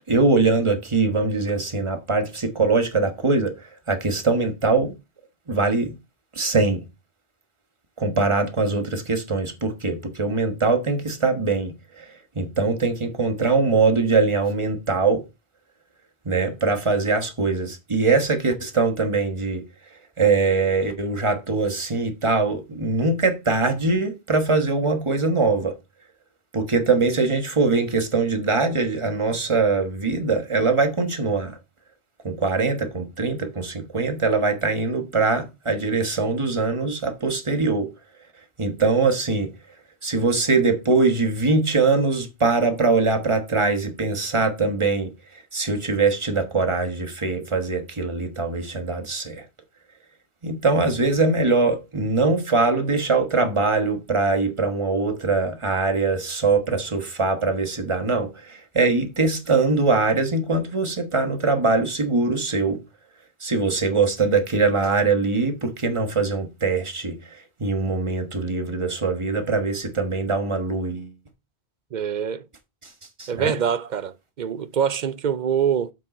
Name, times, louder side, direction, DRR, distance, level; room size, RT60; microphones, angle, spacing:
voice 1, 0.1-4.9 5.5-5.9 6.3-6.8 8.0-15.3 16.2-19.7 20.2-25.8 26.5-31.6 32.2-37.9 38.6-39.5 40.0-45.1 45.5-49.4 50.4-62.8 63.4-71.1 73.2-73.5, right 3 dB, 30° right, 1.3 m, -22 dB
voice 2, 71.9-72.5 73.3-75.9, right 8 dB, 55° right, 0.6 m, -24 dB
7.6 x 6.4 x 4.3 m
omnidirectional pair, 1.1 m